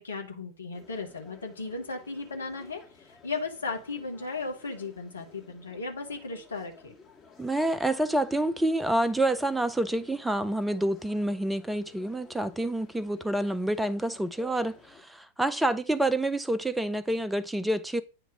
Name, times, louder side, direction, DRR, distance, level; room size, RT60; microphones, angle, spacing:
voice 1, 0.0-6.9, left 3 dB, 75° left, 1.1 m, -36 dB
sound 1, 0.7-15.0, left 5 dB, 25° left, 1.8 m, -54 dB
voice 2, 7.4-18.0, right 1 dB, 5° right, 0.5 m, -28 dB
8.9 x 3.0 x 4.9 m
figure-of-eight pair, 90°, 0 cm